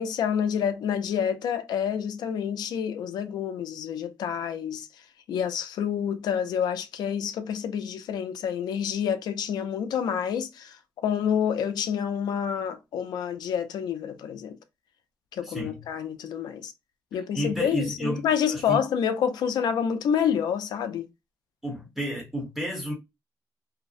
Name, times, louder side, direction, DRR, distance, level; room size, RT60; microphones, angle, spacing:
voice 1, 0.0-4.9 5.3-14.6 15.3-16.7 17.1-21.1, left 8 dB, 80° left, 0.4 m, -28 dB
voice 2, 15.4-15.8 17.1-18.8 21.6-22.9, equal, 5° right, 0.9 m, -32 dB
2.5 x 2.0 x 2.4 m
cardioid pair, 140°, 7 cm